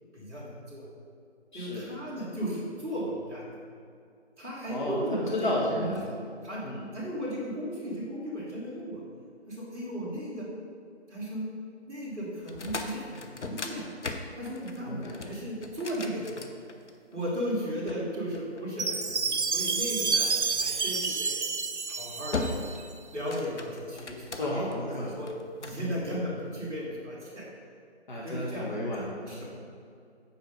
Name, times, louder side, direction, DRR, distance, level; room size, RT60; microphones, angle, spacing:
voice 1, 0.1-0.9 1.5-3.4 4.4-5.3 5.7-5.9 6.4-6.6 6.9-9.0 9.5-10.5 11.1-11.5 11.9-13.9 14.4-16.3 17.1-21.4 21.9-22.6 23.1-25.3 25.6-27.5 28.2-28.9 29.2-29.5, equal, 10° right, -14 dB, 2.0 m, -35 dB
voice 2, 1.5-1.9 4.6-6.2 6.6-6.9 14.8-15.2 24.3-25.1 25.7-25.9 28.1-29.5, left 1 dB, 40° left, -4 dB, 1.3 m, -33 dB
sound 1, 12.4-17.1 17.9-19.2 20.9-21.2 21.7-22.0 22.3-22.9 23.2-24.7 25.3-25.8, left 3 dB, 80° left, 0.9 m, -38 dB
Chime, 18.8-22.9, right 4 dB, 75° right, 0.7 m, -29 dB
8.6 x 5.0 x 5.2 m, 2.4 s
figure-of-eight pair, 160°, 35 cm